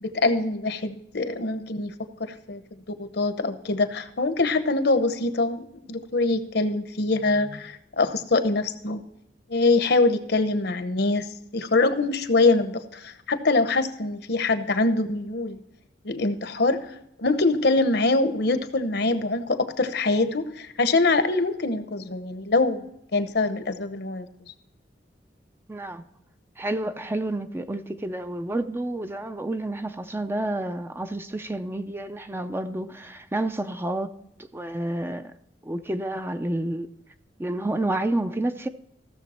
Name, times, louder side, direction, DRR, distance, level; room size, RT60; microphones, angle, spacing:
voice 1, 0.0-1.9 2.2-2.6 3.0-9.0 9.5-11.3 11.5-15.6 16.0-22.9 23.1-24.3, left 3 dB, 65° left, 0.9 m, -24 dB
voice 2, 25.7-26.0 26.6-34.2 34.5-35.3 35.6-36.9 37.4-38.7, right 1 dB, 15° right, 0.5 m, -29 dB
15.5 x 6.9 x 4.3 m
head